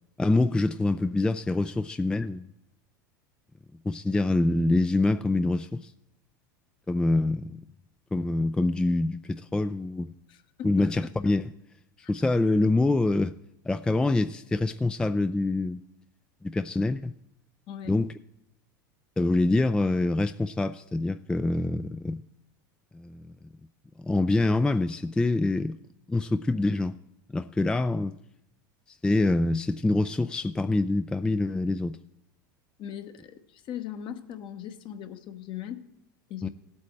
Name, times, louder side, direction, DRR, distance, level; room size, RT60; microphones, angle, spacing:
voice 1, 0.2-2.5 3.9-5.9 6.9-7.6 8.1-10.1 10.6-11.5 12.1-13.3 13.7-15.8 16.4-17.1 17.9-18.1 19.2-22.2 22.9-23.2 24.0-25.8 26.1-27.0 27.3-28.1 28.9-32.0 36.4-36.5, left 2 dB, 10° left, 0.3 m, -25 dB
voice 2, 10.3-10.9 12.0-12.1 17.7-18.0 32.8-35.8 36.3-36.5, left 10 dB, 50° left, 1.1 m, -39 dB
17.5 x 8.4 x 3.2 m
hypercardioid pair, 100°, 11 cm